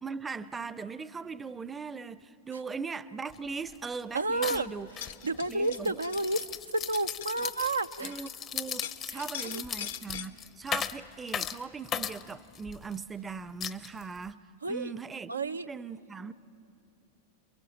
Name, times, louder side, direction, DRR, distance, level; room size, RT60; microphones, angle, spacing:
voice 1, 0.0-4.9 5.5-6.0 7.4-7.5 8.0-14.4 14.7-16.3, right 5 dB, 15° right, 0.6 m, -39 dB
sound 1, 3.3-3.4 3.7-4.0 4.4-13.0 13.6-14.3, left 8 dB, 30° left, 0.7 m, -37 dB
voice 2, 4.1-4.7 5.2-6.5 6.7-8.1 9.1-9.6 14.6-14.9 15.3-15.7, right 2 dB, 80° right, 0.5 m, -31 dB
sound 2, 4.8-8.3 8.7-10.3, left 10 dB, 65° left, 0.9 m, -43 dB
29.0 x 23.0 x 7.3 m
figure-of-eight pair, 90°, 0 cm